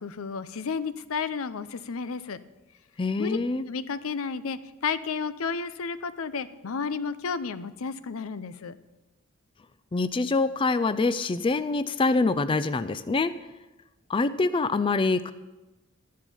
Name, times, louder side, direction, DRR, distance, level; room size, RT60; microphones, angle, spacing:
voice 1, 0.0-2.4 3.2-8.8, left 5 dB, 80° left, 14 dB, 0.6 m, -32 dB
voice 2, 3.0-3.6 9.9-13.4 14.1-15.3, left 3 dB, 25° left, 13 dB, 0.4 m, -25 dB
13.0 x 10.5 x 5.5 m, 1.1 s
head